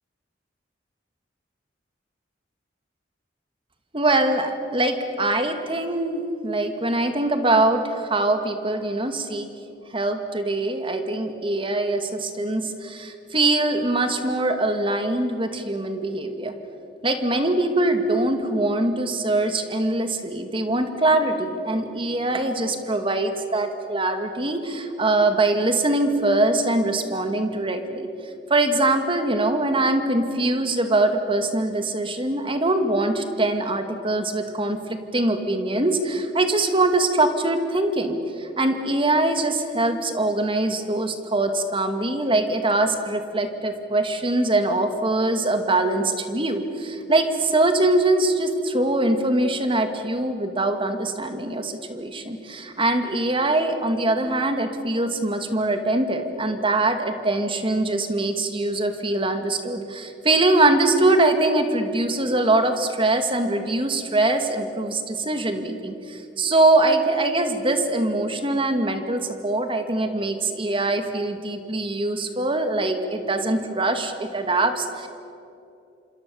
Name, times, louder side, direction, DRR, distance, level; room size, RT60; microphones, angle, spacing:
voice 1, 3.9-9.5 9.9-16.5 17.0-28.1 28.5-75.1, right 2 dB, 30° right, 7 dB, 2.3 m, -23 dB
27.5 x 26.5 x 7.2 m, 2.7 s
head